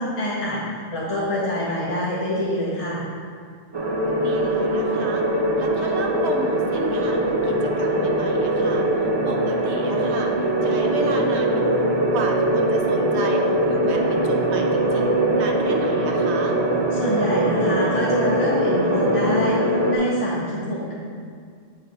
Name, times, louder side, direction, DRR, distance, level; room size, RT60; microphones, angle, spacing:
voice 1, 0.0-3.1 16.9-20.9, left 1 dB, 30° left, -8 dB, 1.0 m, -26 dB
sound 1, 3.7-20.0, right 1 dB, 35° right, 0.4 m, -22 dB
voice 2, 3.9-5.2 5.6-11.6 12.1-16.6, right 3 dB, 65° right, 2 dB, 1.0 m, -32 dB
8.5 x 3.4 x 5.2 m, 2.1 s
omnidirectional pair, 1.3 m